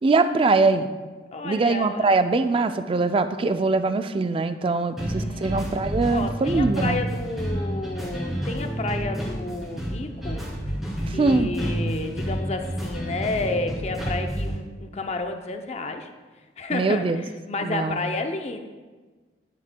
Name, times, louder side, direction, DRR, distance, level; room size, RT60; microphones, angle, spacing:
voice 1, 0.0-0.9 1.4-7.0 11.1-11.5 16.7-17.2 17.6-18.0, right 3 dB, 30° right, 10 dB, 0.3 m, -22 dB
voice 2, 1.3-2.1 5.1-5.6 6.1-10.4 11.0-16.1 16.6-18.6, left 3 dB, 35° left, 6 dB, 0.5 m, -31 dB
sound 1, 5.0-14.5, equal, ahead, 2.4 m, -29 dB
11.0 x 7.5 x 2.2 m, 1.3 s
head